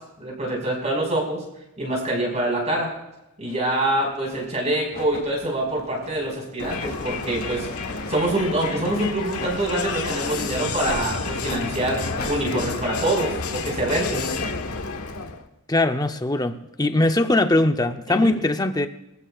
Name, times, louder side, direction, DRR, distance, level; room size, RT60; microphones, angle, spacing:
voice 1, 0.2-1.4 1.8-2.9 3.4-7.7 8.1-14.3 18.1-18.3, right 1 dB, 30° right, 5.2 m, -25 dB
sound 1, 3.4-3.6 4.3-4.6 4.9-8.3 8.8-8.9 9.4-9.6 10.2-10.4 10.8-11.0 11.4-11.6 12.2-12.3, left 2 dB, 45° left, 2.7 m, -37 dB
Crowd, 6.6-15.4, left 4 dB, 85° left, 1.4 m, -30 dB
voice 2, 15.7-18.9, left 2 dB, 20° left, 0.7 m, -21 dB
24.0 x 15.0 x 2.4 m
head